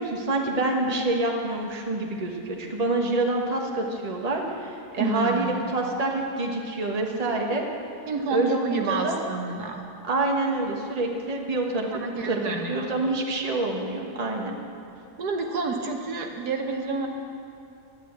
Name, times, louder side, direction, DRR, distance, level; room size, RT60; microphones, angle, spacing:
voice 1, 0.0-7.7 8.3-9.2 10.0-14.6, right 2 dB, 25° right, 1 dB, 1.3 m, -27 dB
voice 2, 5.0-5.6 8.1-9.8 11.9-12.9 15.2-17.1, right 4 dB, 75° right, 3 dB, 1.6 m, -29 dB
11.0 x 10.5 x 8.0 m, 2.6 s
omnidirectional pair, 1.8 m